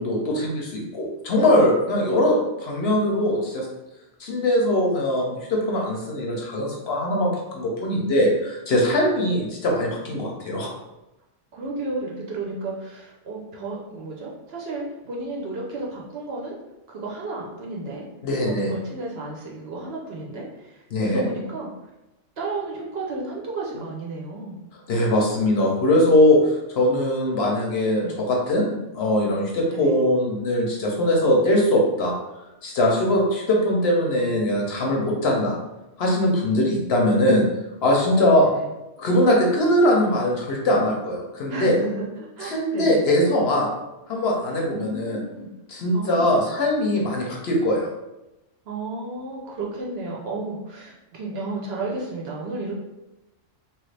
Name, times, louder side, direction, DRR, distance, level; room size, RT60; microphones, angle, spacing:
voice 1, 0.0-3.7 4.2-10.7 18.2-18.7 20.9-21.2 24.9-32.1 32.6-35.5 36.0-37.4 37.8-38.5 39.0-41.8 42.4-43.7 44.1-45.2 45.7-47.9, left 1 dB, 60° left, -1 dB, 0.8 m, -21 dB
voice 2, 11.5-16.5 16.9-18.0 18.4-21.7 22.4-24.6 28.0-28.2 29.7-30.0 36.7-36.8 38.1-38.7 41.5-43.0 44.7-45.5 45.9-46.4 48.7-52.8, right 2 dB, 60° right, -2 dB, 0.8 m, -33 dB
3.0 x 2.4 x 3.2 m, 0.98 s
omnidirectional pair, 1.3 m